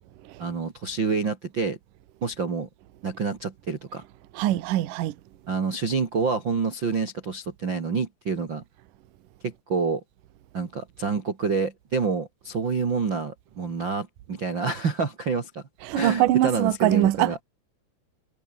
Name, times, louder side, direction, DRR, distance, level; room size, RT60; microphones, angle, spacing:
voice 1, 0.4-1.8 2.2-2.7 3.0-4.0 5.5-8.6 9.4-10.0 10.5-15.6 15.9-17.4, right 5 dB, 40° right, 1.9 m, -27 dB
voice 2, 4.4-5.1 15.9-17.4, right 14 dB, 65° right, 2.3 m, -22 dB
omnidirectional pair, 5.3 m